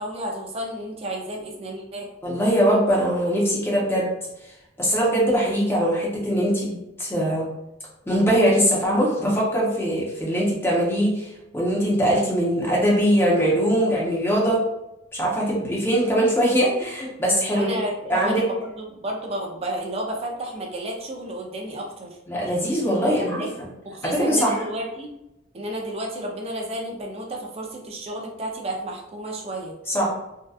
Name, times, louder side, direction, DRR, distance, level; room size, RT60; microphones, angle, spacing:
voice 1, 0.0-2.1 17.5-22.2 23.0-23.5 23.8-25.1 25.5-29.8, right 1 dB, 30° right, 0 dB, 0.4 m, -31 dB
voice 2, 2.2-4.1 4.8-7.4 8.1-14.6 15.1-17.7 18.1-18.4 22.3-23.4 24.0-24.6 29.9-30.1, equal, 10° left, -5 dB, 0.7 m, -21 dB
2.6 x 2.2 x 2.3 m, 0.89 s
head